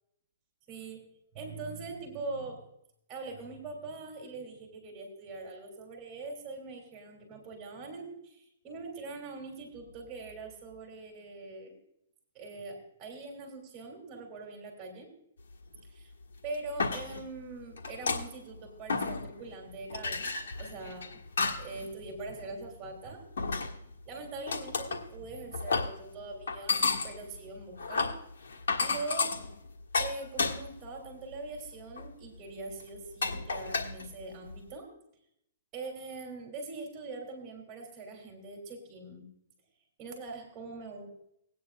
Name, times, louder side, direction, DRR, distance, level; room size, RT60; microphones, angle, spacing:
voice 1, 0.7-1.0 1.3-2.6 3.1-11.8 12.3-15.1 15.9-16.1 16.4-21.2 21.6-23.3 23.7-28.2 28.8-29.4 30.0-34.9 35.7-39.3 40.0-41.1, right 3 dB, 25° right, 0 dB, 3.2 m, -42 dB
sound 1, 15.7-15.8 16.4-17.4 17.8-18.6 18.9-19.5 19.9-21.8 22.2-22.5 23.4-24.0 24.5-25.1 25.5-26.0 26.5-30.9 31.3-31.5 32.0-32.1 32.8-32.9 33.2-34.6, left 4 dB, 85° left, 1.5 m, -32 dB
19.0 x 9.5 x 2.5 m, 0.74 s
hypercardioid pair, 155°, 0 cm